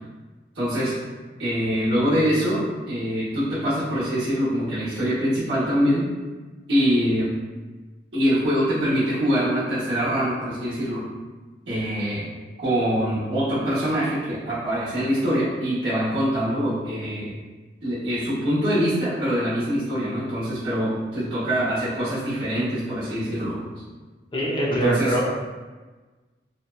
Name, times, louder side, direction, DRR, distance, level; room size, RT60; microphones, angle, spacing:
voice 1, 0.5-1.0 1.4-6.1 6.7-7.3 8.1-11.1 11.7-12.3 12.6-17.3 17.8-23.8 24.7-25.2, equal, 80° right, -11 dB, 0.9 m, -24 dB
voice 2, 24.3-25.3, right 1 dB, 25° left, -5 dB, 0.4 m, -23 dB
2.6 x 2.1 x 2.3 m, 1.3 s
head